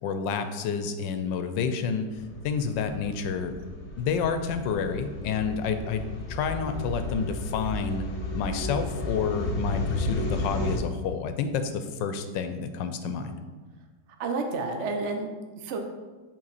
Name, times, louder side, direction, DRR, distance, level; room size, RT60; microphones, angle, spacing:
voice 1, 0.0-2.1 2.4-3.5 4.0-8.0 8.3-13.4, left 6 dB, 80° left, 8 dB, 1.2 m, -29 dB
sound 1, 2.1-10.8, left 2 dB, 45° left, 1.0 m, -33 dB
voice 2, 14.2-15.8, right 3 dB, 60° right, 4 dB, 0.8 m, -30 dB
7.5 x 4.1 x 4.1 m, 1.3 s
omnidirectional pair, 2.0 m